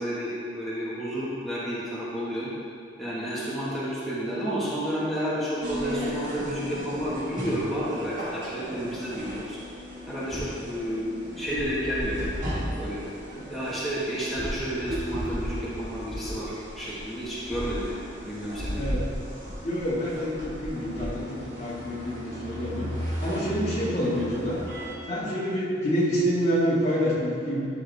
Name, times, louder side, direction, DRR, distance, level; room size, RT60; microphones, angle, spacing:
voice 1, 0.0-2.5 3.0-9.6 10.1-13.0 13.5-18.9, equal, ahead, -11 dB, 1.7 m, -31 dB
sound 1, 5.6-24.9, equal, 45° right, 2.2 m, -35 dB
voice 2, 18.7-19.1 19.6-22.9 23.2-24.6 25.1-27.7, equal, 35° left, -7 dB, 2.2 m, -27 dB
13.0 x 6.1 x 3.6 m, 2.4 s
head